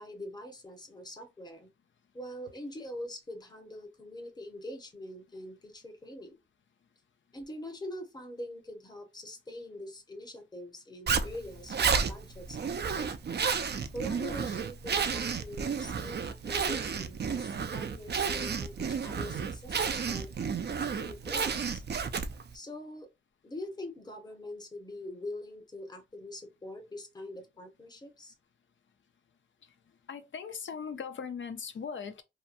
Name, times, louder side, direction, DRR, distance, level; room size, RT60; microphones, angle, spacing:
voice 1, 0.0-1.7 2.1-6.4 7.3-13.1 13.9-20.3 20.9-21.8 22.5-23.1 23.4-28.3, left 1 dB, 20° left, 0.8 m, -43 dB
Zipper (clothing), 11.1-22.5, right 6 dB, 55° right, 0.4 m, -31 dB
voice 2, 30.1-32.2, left 6 dB, 70° left, 0.5 m, -39 dB
2.8 x 2.2 x 2.4 m
cardioid pair, 45°, 21 cm